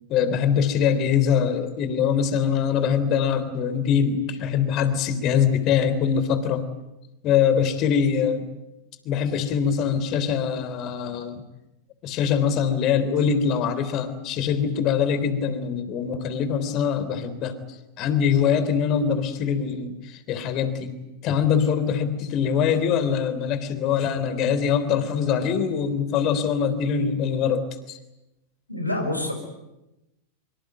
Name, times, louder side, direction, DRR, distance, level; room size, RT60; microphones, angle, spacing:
voice 1, 0.1-6.6 7.2-8.4 9.1-11.4 12.0-17.5 18.0-20.9 21.2-28.0, left 7 dB, 40° left, 12 dB, 3.6 m, -23 dB
voice 2, 28.7-29.3, left 1 dB, 90° left, 3 dB, 6.3 m, -26 dB
25.0 x 24.5 x 9.2 m, 0.96 s
figure-of-eight pair, 90°, 0 cm